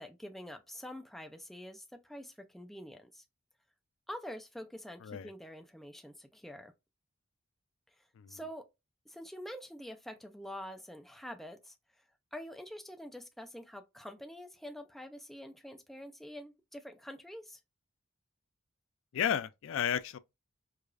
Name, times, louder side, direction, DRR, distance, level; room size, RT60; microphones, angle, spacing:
voice 1, 0.0-3.2 4.1-6.7 8.3-8.6 9.1-11.7 12.3-17.6, equal, ahead, 0.4 m, -46 dB
voice 2, 5.0-5.3 8.2-8.4 19.1-20.2, left 8 dB, 70° left, 0.3 m, -33 dB
4.8 x 2.4 x 2.4 m
head